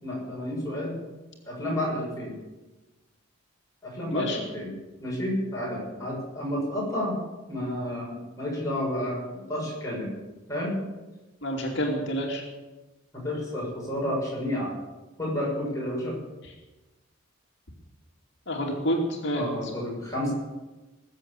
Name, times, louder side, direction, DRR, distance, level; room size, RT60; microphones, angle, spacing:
voice 1, 0.0-1.0 1.4-2.4 3.8-7.2 7.5-10.1 10.5-10.8 13.1-14.7 15.2-16.2 19.3-20.3, left 1 dB, 15° left, -4 dB, 6.5 m, -31 dB
voice 2, 11.4-12.4 18.5-19.4, equal, 55° left, 0 dB, 2.7 m, -28 dB
20.0 x 7.9 x 8.4 m, 1.1 s
head